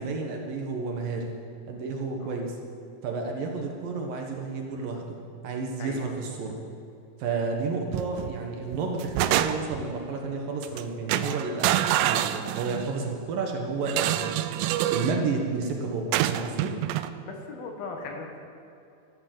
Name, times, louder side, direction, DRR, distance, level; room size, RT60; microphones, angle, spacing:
voice 1, 0.0-1.3 1.7-2.6 3.0-5.2 5.4-6.6 7.2-11.7 12.0-14.3 14.9-16.7, right 4 dB, 65° right, 2 dB, 2.7 m, -31 dB
voice 2, 5.8-6.1 10.7-11.6 17.2-18.4, left 3 dB, 65° left, 2 dB, 3.3 m, -40 dB
sound 1, 7.9-8.3 8.7-9.9 10.6-10.8 11.1-12.9 13.9-15.2 16.1-17.1, right 13 dB, 90° right, 2.8 m, -26 dB
14.0 x 12.5 x 7.8 m, 2.6 s
omnidirectional pair, 4.9 m